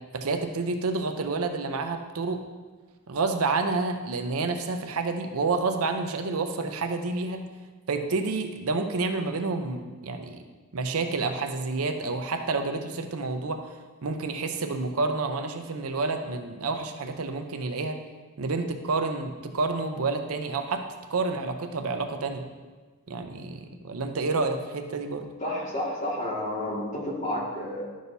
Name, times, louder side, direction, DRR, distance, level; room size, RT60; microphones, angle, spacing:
voice 1, 0.1-2.4 3.1-7.4 7.9-10.4 10.7-13.6 14.0-18.0 18.4-20.8 21.1-22.4 23.1-25.3, right 3 dB, 70° right, 6 dB, 0.6 m, -29 dB
voice 2, 25.4-27.8, left 1 dB, 35° left, -4 dB, 1.9 m, -30 dB
11.0 x 6.3 x 2.7 m, 1.4 s
head